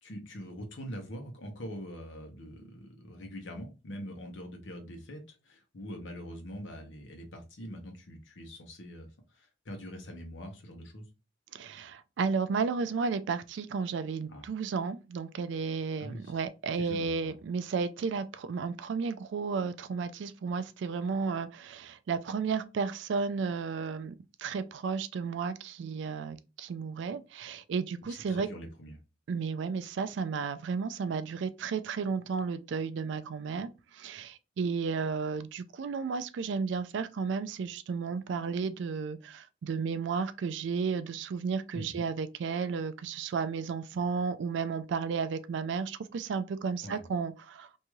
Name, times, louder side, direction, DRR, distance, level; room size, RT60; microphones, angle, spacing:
voice 1, 0.0-11.1 14.3-14.4 16.0-16.3 16.8-17.3 28.1-29.0 41.7-42.0 46.8-47.0, equal, 80° left, 0.9 m, -43 dB
voice 2, 11.5-28.5 29.3-47.7, right 5 dB, 70° right, 0.3 m, -33 dB
3.0 x 2.6 x 2.3 m
head